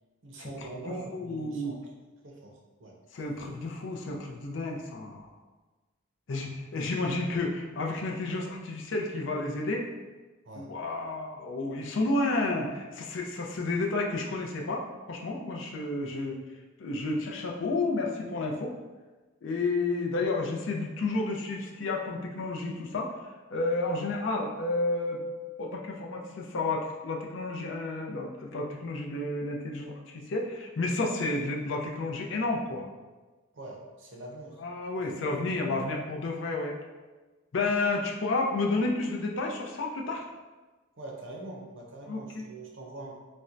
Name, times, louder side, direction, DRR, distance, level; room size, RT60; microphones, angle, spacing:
voice 1, 0.2-1.8 2.2-2.9 9.5-9.6 10.4-10.7 33.5-34.6 35.1-35.5 41.0-43.1, right 2 dB, 65° right, -1 dB, 0.6 m, -43 dB
voice 2, 1.1-1.8 3.1-5.3 6.3-9.9 10.6-16.4 16.8-18.7 19.4-23.1 23.5-25.2 25.6-32.8 34.6-36.7 37.5-40.3 42.1-42.5, left 2 dB, 65° left, 0 dB, 0.4 m, -31 dB
4.2 x 2.1 x 2.5 m, 1.2 s
head